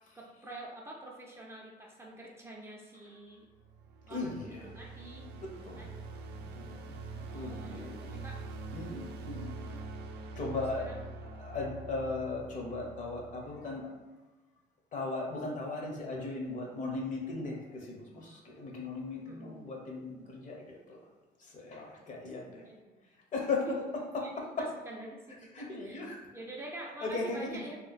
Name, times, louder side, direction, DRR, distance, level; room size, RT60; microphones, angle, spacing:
voice 1, 0.1-3.5 4.1-6.1 7.3-8.4 9.6-9.9 10.9-11.0 19.2-19.7 22.5-23.0 24.2-24.3 24.6-26.1 26.3-27.8, right 1 dB, 15° right, -3 dB, 0.5 m, -47 dB
sound 1, 3.5-13.7, right 3 dB, 75° right, 0.4 m, -44 dB
voice 2, 4.1-4.7 5.3-5.9 6.3-8.3 8.7-9.5 10.4-10.9 11.3-13.9 14.9-21.0 21.4-22.6 23.3-23.7 24.6-24.7 25.5-26.2 27.0-27.6, left 3 dB, 50° left, -1 dB, 0.8 m, -38 dB
2.9 x 2.1 x 4.1 m, 1.2 s
cardioid pair, 110°, 17 cm